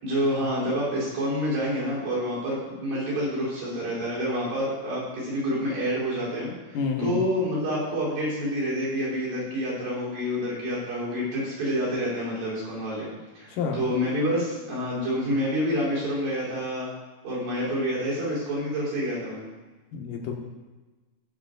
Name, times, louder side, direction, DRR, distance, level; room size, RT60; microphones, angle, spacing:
voice 1, 0.0-6.5 7.0-13.1 13.4-16.9 17.2-19.4, equal, 65° right, -7 dB, 6.0 m, -28 dB
voice 2, 6.7-7.2 13.5-13.8 19.9-20.3, left 5 dB, 65° left, 1 dB, 2.8 m, -29 dB
17.5 x 6.3 x 4.0 m, 1.2 s
omnidirectional pair, 4.3 m